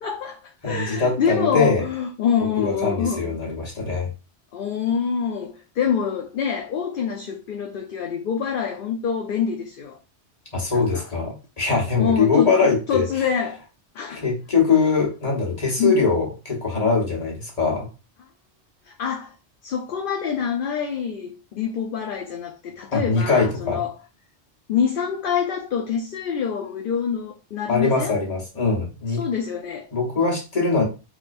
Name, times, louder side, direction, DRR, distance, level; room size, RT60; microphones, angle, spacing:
voice 1, 0.0-3.4 4.5-10.0 10.7-11.0 12.0-12.5 12.9-13.6 13.9-14.2 15.8-16.0 18.9-19.3 19.6-23.9 24.7-28.2 29.1-29.9, left 7 dB, 60° left, 0.7 m, -26 dB
voice 2, 0.6-1.9 2.6-4.1 10.5-13.2 14.2-17.9 22.9-23.8 27.7-29.2 29.9-30.8, left 4 dB, 35° left, 1.2 m, -22 dB
3.6 x 3.0 x 2.5 m
omnidirectional pair, 1.1 m